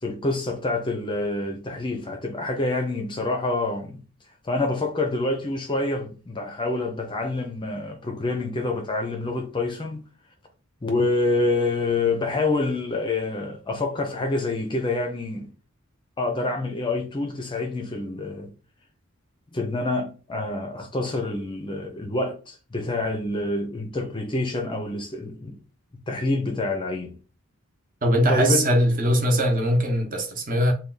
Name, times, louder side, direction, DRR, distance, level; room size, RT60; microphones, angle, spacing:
voice 1, 0.0-4.0 4.4-10.0 10.8-15.5 16.2-18.5 19.5-25.6 26.1-27.2 28.3-28.7, left 2 dB, 20° left, 0.5 m, -27 dB
voice 2, 28.0-30.7, equal, 40° right, 0.9 m, -21 dB
3.4 x 2.3 x 3.9 m
head